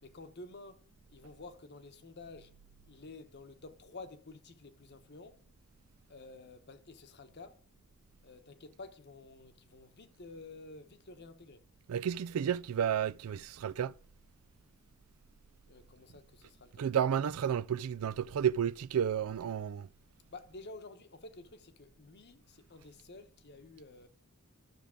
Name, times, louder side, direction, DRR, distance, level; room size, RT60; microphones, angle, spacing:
voice 1, 0.0-2.6 2.9-5.4 6.1-7.6 8.2-11.6 15.7-16.9 20.3-24.1, left 3 dB, 50° left, 1.0 m, -51 dB
voice 2, 11.9-13.9 16.8-19.9, right 8 dB, 80° right, 0.4 m, -31 dB
12.5 x 6.7 x 3.7 m
head